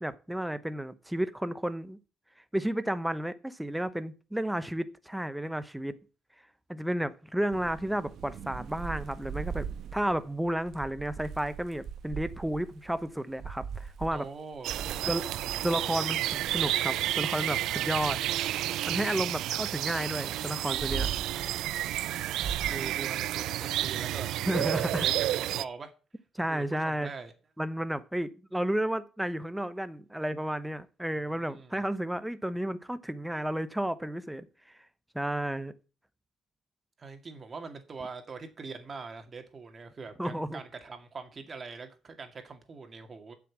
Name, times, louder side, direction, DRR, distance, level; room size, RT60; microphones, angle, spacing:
voice 1, 0.0-2.0 2.5-6.0 6.7-9.7 9.9-14.3 15.1-15.2 15.6-18.2 18.9-21.1 24.5-25.1 26.3-27.1 27.6-34.5 35.1-35.7 40.2-40.6, right 1 dB, 5° right, 0.9 m, -32 dB
Thunder / Rain, 7.5-17.2 17.7-19.6 20.2-25.0, right 7 dB, 70° right, 1.3 m, -41 dB
voice 2, 14.1-15.1 22.2-25.9 26.4-27.3 31.3-31.8 37.0-43.3, right 4 dB, 40° right, 2.2 m, -43 dB
sound 1, 14.6-25.6, right 14 dB, 85° right, 0.4 m, -31 dB
7.9 x 6.1 x 7.4 m
cardioid pair, 90°, 0 cm